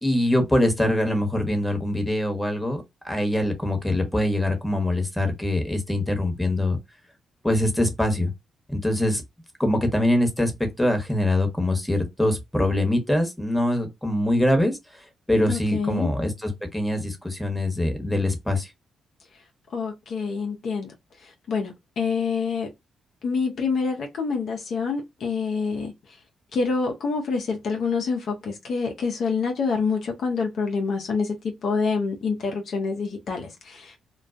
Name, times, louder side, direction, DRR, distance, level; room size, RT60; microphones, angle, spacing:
voice 1, 0.0-6.8 7.4-8.3 8.7-9.2 9.6-15.0 15.3-18.7, left 1 dB, 5° left, 1.0 m, -23 dB
voice 2, 15.5-16.1 19.7-20.9 21.2-22.7 23.2-25.9 26.5-33.9, left 5 dB, 60° left, 0.5 m, -27 dB
2.3 x 2.2 x 2.4 m
hypercardioid pair, 40°, 0 cm